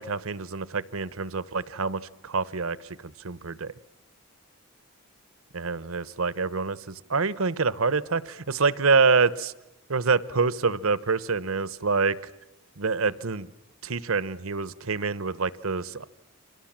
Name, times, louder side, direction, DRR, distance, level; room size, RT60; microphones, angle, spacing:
voice 1, 0.0-2.8 3.2-3.7 5.5-9.5 9.9-12.2 12.8-13.5 13.8-16.1, right 4 dB, 70° right, 17 dB, 0.9 m, -26 dB
29.5 x 25.5 x 7.5 m, 0.91 s
head